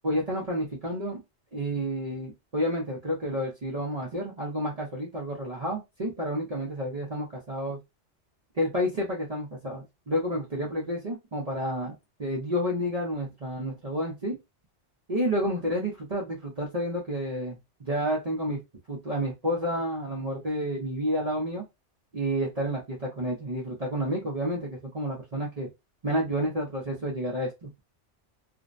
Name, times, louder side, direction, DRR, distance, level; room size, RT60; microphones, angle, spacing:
voice 1, 0.0-1.2 1.5-7.8 8.5-11.9 12.2-14.4 15.1-18.6 18.9-21.6 22.1-25.7 26.0-27.7, equal, 40° right, -3 dB, 0.7 m, -30 dB
2.5 x 2.1 x 2.4 m, 0.22 s
omnidirectional pair, 1.2 m